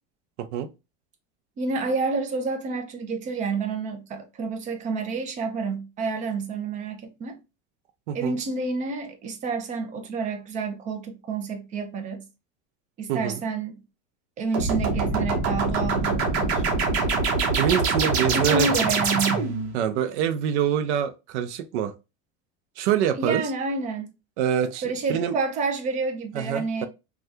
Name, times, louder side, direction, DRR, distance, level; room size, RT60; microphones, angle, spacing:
voice 1, 1.6-7.4 8.1-12.2 13.0-13.8 14.4-16.7 18.3-19.5 23.2-24.1 24.8-26.9, right 4 dB, 25° right, 0.5 m, -29 dB
voice 2, 13.1-13.4 17.6-18.7 19.7-21.9 22.8-23.4 24.4-24.8 25.1-25.3 26.3-26.9, right 9 dB, 85° right, 0.5 m, -25 dB
sound 1, 14.5-19.7, right 4 dB, 65° right, 0.9 m, -24 dB
2.7 x 2.3 x 3.2 m
supercardioid pair, 155°, 33 cm